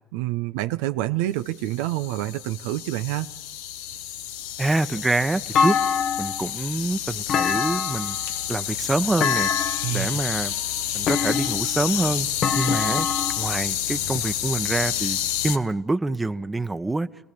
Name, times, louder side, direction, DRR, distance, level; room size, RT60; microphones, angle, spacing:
voice 1, 0.1-3.3 9.8-10.2, right 15 dB, 80° right, 10 dB, 0.8 m, -27 dB
sound 1, 1.6-15.6, left 10 dB, 80° left, 1.1 m, -29 dB
voice 2, 4.6-5.8 6.2-8.2 8.5-9.5 9.9-10.5 10.9-12.3 12.5-13.1 13.4-15.2 15.4-17.1, right 2 dB, 15° right, 11 dB, 1.1 m, -26 dB
Thump thud, 5.5-6.5 7.3-8.2 9.2-10.0 11.1-11.8 12.4-13.4, left 6 dB, 55° left, 1.0 m, -24 dB
28.5 x 18.5 x 6.9 m, 0.92 s
hypercardioid pair, 65°, 0 cm